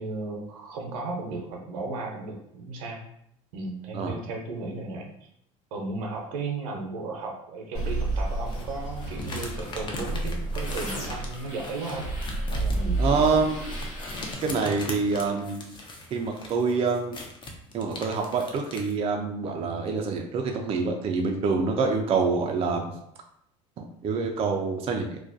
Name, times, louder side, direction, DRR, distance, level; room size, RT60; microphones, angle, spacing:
voice 1, 0.0-3.0 3.5-5.1 5.7-12.1 12.5-13.2, right 3 dB, 80° right, 1 dB, 0.6 m, -35 dB
sound 1, 7.7-14.3, right 1 dB, 55° left, 0.9 m, -31 dB
sound 2, 8.5-18.9, left 2 dB, 30° left, 0.5 m, -40 dB
voice 2, 13.0-13.7 14.4-15.7 16.1-17.2 17.7-22.9 23.8-25.2, right 4 dB, 35° right, 2 dB, 0.4 m, -26 dB
2.3 x 2.1 x 2.5 m, 0.71 s
hypercardioid pair, 85°, 17 cm